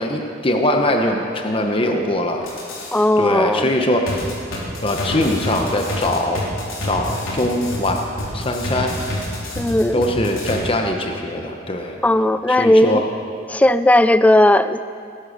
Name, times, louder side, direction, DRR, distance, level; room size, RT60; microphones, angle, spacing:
voice 1, 0.0-2.4 3.2-4.2 4.8-6.5 6.8-8.0 8.3-8.9 9.9-12.0 12.5-13.0, left 1 dB, 30° left, 3 dB, 1.0 m, -21 dB
sound 1, 2.4-3.0 4.1-10.6, left 1 dB, 90° left, 3.5 m, -28 dB
voice 2, 2.9-3.7 9.6-10.0 12.0-13.1 13.5-14.9, left 1 dB, 5° left, 13 dB, 0.3 m, -16 dB
18.5 x 11.0 x 6.5 m, 2.4 s
head